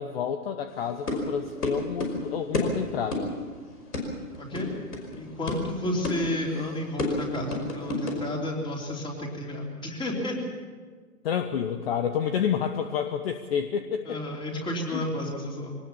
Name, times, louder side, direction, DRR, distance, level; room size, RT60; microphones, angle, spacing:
voice 1, 0.0-3.3 11.2-14.2 14.9-15.0, left 8 dB, 40° left, 8 dB, 1.1 m, -29 dB
sound 1, 0.7-8.3, left 2 dB, 80° left, 5.4 m, -32 dB
voice 2, 4.4-4.7 5.2-10.4 14.1-15.8, left 1 dB, 10° left, 0 dB, 3.5 m, -31 dB
23.0 x 19.0 x 7.2 m, 1.5 s
hypercardioid pair, 135°, 46 cm